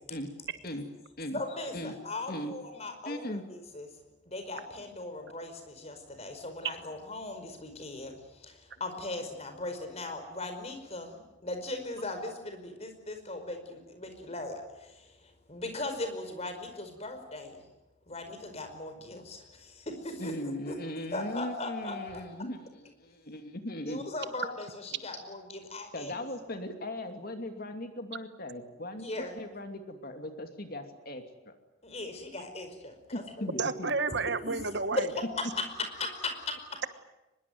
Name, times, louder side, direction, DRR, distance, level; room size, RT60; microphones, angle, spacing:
voice 1, 1.3-3.9 4.2-17.6 18.1-20.8 21.1-22.3 23.9-26.1 28.9-29.3 31.8-33.6 34.1-34.2 35.0-36.8, left 2 dB, 30° left, 6 dB, 4.9 m, -38 dB
voice 2, 3.0-3.4 20.2-24.0 25.9-31.5 33.1-33.9, left 1 dB, 45° left, 6 dB, 2.7 m, -38 dB
voice 3, 33.6-35.1, right 4 dB, 55° right, 11 dB, 1.3 m, -30 dB
24.0 x 22.0 x 9.4 m, 0.99 s
head